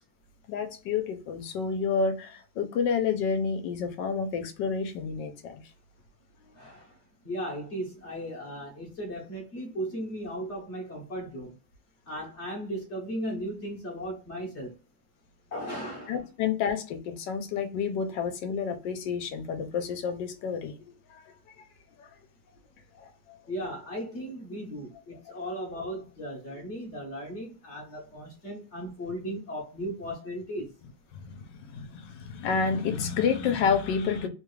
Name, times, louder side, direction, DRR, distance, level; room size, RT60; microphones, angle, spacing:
voice 1, 0.5-5.6 16.1-21.2 22.0-22.1 23.0-23.4 31.1-34.3, left 6 dB, 75° left, 1.3 m, -30 dB
voice 2, 6.5-7.0 7.2-11.5 12.1-14.7 15.5-16.2 23.5-30.7, equal, 45° left, 0.9 m, -36 dB
3.5 x 2.4 x 3.1 m
omnidirectional pair, 2.1 m